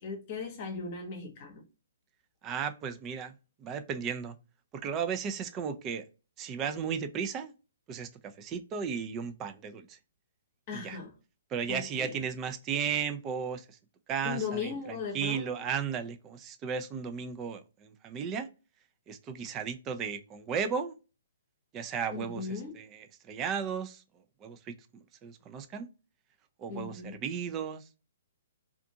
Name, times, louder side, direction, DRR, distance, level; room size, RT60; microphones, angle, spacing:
voice 1, 0.0-1.6 10.7-11.1 11.7-12.2 14.2-15.7 22.1-22.8 26.7-27.2, left 5 dB, 40° left, 0.9 m, -38 dB
voice 2, 2.4-4.4 4.7-6.0 6.4-7.5 7.9-10.0 10.7-11.0 11.5-13.8 14.1-18.5 19.1-20.9 21.7-24.0 24.4-25.9 26.6-27.8, right 7 dB, 25° right, 0.4 m, -35 dB
2.5 x 2.4 x 2.6 m
hypercardioid pair, 130°, 0 cm